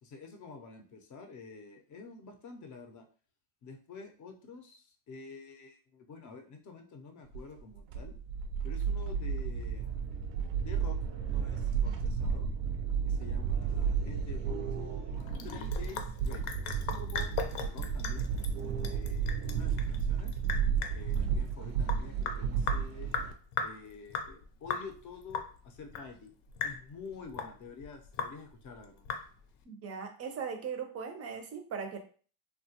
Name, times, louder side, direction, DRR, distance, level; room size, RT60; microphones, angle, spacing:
voice 1, 0.0-3.0 3.6-8.1 8.6-10.1 10.6-11.0 11.2-12.5 13.0-16.4 16.7-20.4 20.9-23.1 23.6-26.3 26.6-29.0, left 4 dB, 40° left, 4 dB, 0.5 m, -48 dB
sound 1, 7.3-23.3, right 7 dB, 85° right, 0.6 m, -32 dB
Sink (filling or washing) / Drip, 15.2-29.6, left 6 dB, 80° left, 0.6 m, -39 dB
voice 2, 29.7-32.0, right 6 dB, 30° right, 6 dB, 0.4 m, -39 dB
2.8 x 2.2 x 2.8 m, 0.41 s
cardioid pair, 130°, 50 cm